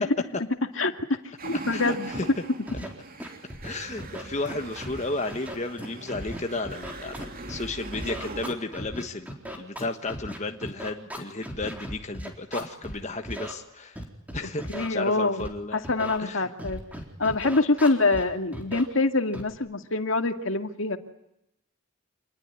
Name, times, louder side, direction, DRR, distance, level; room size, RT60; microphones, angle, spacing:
voice 1, 0.8-2.1 14.7-15.5 15.7-16.8 17.2-21.0, left 3 dB, 65° left, 7 dB, 2.1 m, -25 dB
sound 1, 1.4-8.5, right 2 dB, 45° right, 2.9 m, -41 dB
voice 2, 1.7-2.3 3.6-14.0 14.3-15.8 16.2-16.5, left 2 dB, 35° left, 5 dB, 1.4 m, -33 dB
Scratching (performance technique), 2.1-2.2 2.7-2.9 3.2-3.7 4.0-5.0 5.3-7.6 7.9-13.0 13.3-13.5 14.0-14.9 15.4-15.5 15.8-16.2 16.6-18.2 18.5-18.8 19.3-19.5, equal, 5° right, 4.2 m, -37 dB
27.5 x 20.5 x 9.8 m, 0.83 s
head